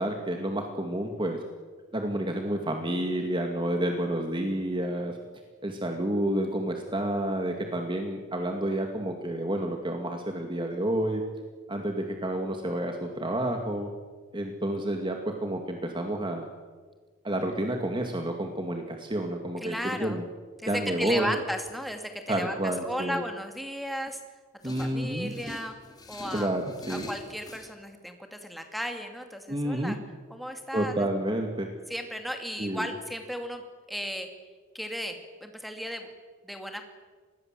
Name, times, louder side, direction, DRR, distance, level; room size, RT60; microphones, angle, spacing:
voice 1, 0.0-1.4 1.9-5.1 5.6-11.2 11.7-13.9 14.3-16.5 17.2-20.2 20.7-21.4 22.3-23.2 24.6-25.3 26.3-27.1 29.5-29.9 30.7-31.7 32.6-32.9, right 1 dB, 25° right, 3 dB, 2.2 m, -29 dB
voice 2, 19.6-20.2 20.6-24.2 24.6-25.7 26.1-26.5 26.9-30.0 30.3-31.1 31.9-33.6 33.9-34.3 34.7-36.1 36.4-36.8, equal, ahead, 5 dB, 2.6 m, -35 dB
sound 1, 24.6-27.7, left 2 dB, 20° left, 2.6 m, -44 dB
27.0 x 20.5 x 7.6 m, 1.5 s
head